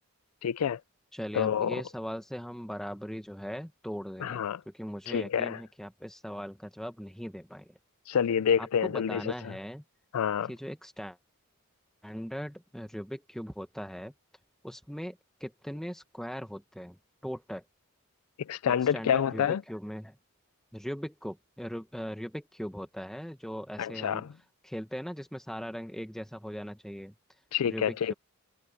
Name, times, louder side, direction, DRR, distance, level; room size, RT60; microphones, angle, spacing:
voice 1, 0.4-0.8 1.3-1.8 4.2-4.6 5.1-5.6 8.1-9.5 10.1-10.5 18.4-19.6 23.8-24.3 27.5-28.1, left 8 dB, 90° left, 0.4 m, -28 dB
voice 2, 1.1-7.8 8.6-9.8 10.5-11.2 12.0-14.1 14.6-17.6 18.7-20.2 20.7-24.3 24.6-27.1 27.6-28.1, equal, ahead, 1.3 m, -39 dB
head